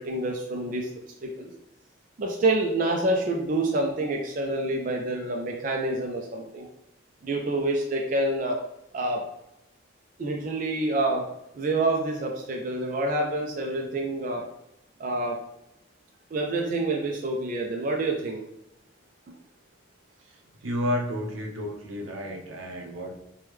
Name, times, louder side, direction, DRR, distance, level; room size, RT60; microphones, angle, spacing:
voice 1, 0.1-0.9 1.2-1.5 2.2-6.7 7.2-8.6 8.9-9.2 10.2-11.3 11.5-14.4 15.0-15.4 16.3-18.4, right 2 dB, 40° right, 1 dB, 0.3 m, -27 dB
voice 2, 20.6-23.2, left 1 dB, 80° right, 1 dB, 0.6 m, -31 dB
3.1 x 2.2 x 3.4 m, 0.87 s
head